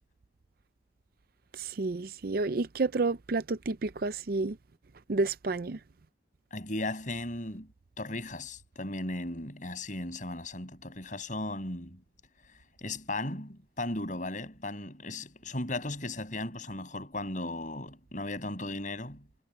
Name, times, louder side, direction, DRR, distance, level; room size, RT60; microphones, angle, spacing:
voice 1, 1.5-4.6 5.1-5.8, right 3 dB, 50° right, 0.5 m, -30 dB
voice 2, 6.5-7.7 8.0-12.0 12.8-19.2, left 2 dB, 45° left, 7.0 m, -36 dB
head